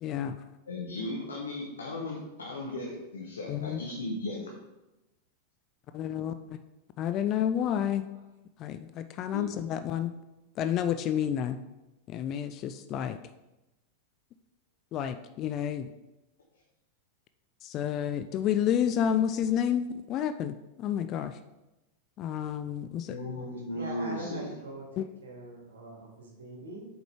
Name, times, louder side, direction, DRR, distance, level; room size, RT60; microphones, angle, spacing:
voice 1, 0.0-0.4 3.5-3.8 5.9-6.3 7.0-8.1 8.6-10.1 10.6-11.6 12.1-13.2 14.9-15.9 17.6-21.4 22.2-23.2 25.0-25.1, left 9 dB, 35° left, 10 dB, 0.3 m, -30 dB
voice 2, 0.7-4.5 9.3-9.5 23.1-24.5, left 1 dB, 70° left, -2 dB, 1.1 m, -36 dB
voice 3, 23.4-26.9, right 2 dB, 65° right, 0 dB, 1.8 m, -43 dB
7.6 x 4.9 x 3.3 m, 0.98 s
figure-of-eight pair, 90°, 0 cm